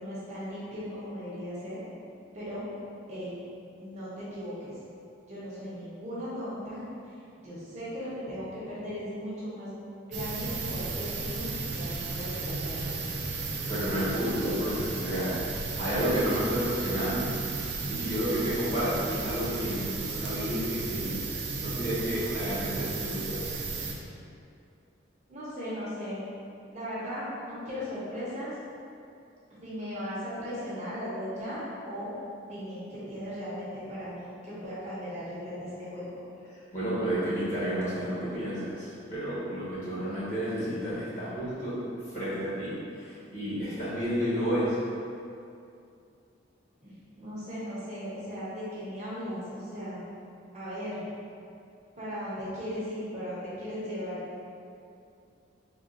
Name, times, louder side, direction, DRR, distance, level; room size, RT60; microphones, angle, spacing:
voice 1, 0.0-1.8 2.3-2.6 3.1-3.4 3.8-4.8 5.3-9.8 10.1-13.1 25.3-26.2 26.7-28.6 29.6-32.1 32.5-36.1 46.8-50.0 50.5-51.0 52.0-54.2, equal, 35° right, -9 dB, 0.8 m, -37 dB
sound 1, 10.1-23.9, right 3 dB, 60° right, 0.4 m, -34 dB
voice 2, 13.7-17.4 17.9-21.2 21.6-23.4 36.7-44.8, equal, 40° left, -12 dB, 1.3 m, -31 dB
3.6 x 2.4 x 2.5 m, 2.5 s
head